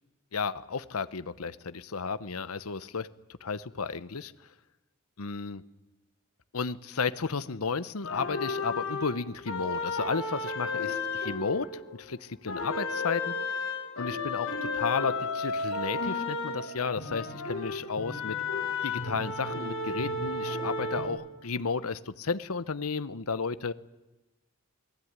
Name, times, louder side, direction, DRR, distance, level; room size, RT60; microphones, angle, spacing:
voice 1, 0.3-3.1 3.4-4.3 5.2-5.6 6.5-13.3 14.0-18.4 18.8-23.7, left 5 dB, 85° left, 14 dB, 0.9 m, -33 dB
sound 1, 8.0-12.1 12.5-21.1, left 3 dB, 70° left, 7.8 m, -33 dB
28.0 x 19.5 x 9.6 m, 1.0 s
head